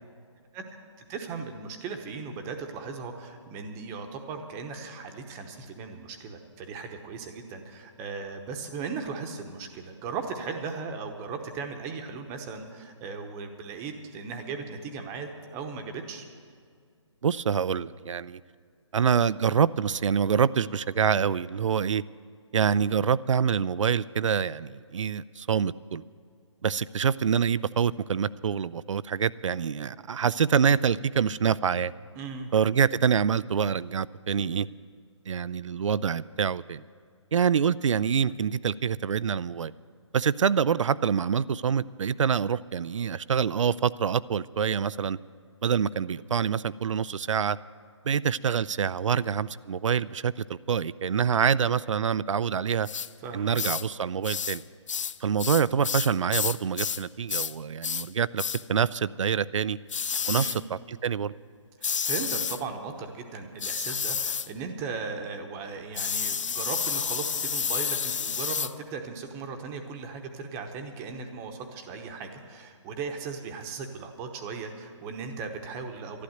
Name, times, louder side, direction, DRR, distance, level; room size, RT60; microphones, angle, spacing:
voice 1, 1.0-16.3 32.2-32.5 53.2-53.9 60.3-60.6 61.8-76.2, right 5 dB, 15° right, 5 dB, 0.9 m, -37 dB
voice 2, 17.2-18.4 18.9-22.0 22.5-26.0 26.6-31.9 32.5-34.7 35.3-36.8 37.3-39.7 40.1-45.2 45.6-47.6 48.1-52.9 53.3-54.6 55.2-58.4 58.7-59.8 60.3-61.3, right 7 dB, 80° right, 17 dB, 0.4 m, -26 dB
sound 1, 52.9-53.1 53.5-53.9 54.2-54.6 54.9-57.0 57.3-57.5 57.8-58.1 58.4-58.6 59.9-60.6 61.8-62.6 63.6-64.5 66.0-68.7, left 7 dB, 80° left, 0.5 m, -30 dB
12.0 x 11.5 x 7.8 m, 2.1 s
hypercardioid pair, 155°, 16 cm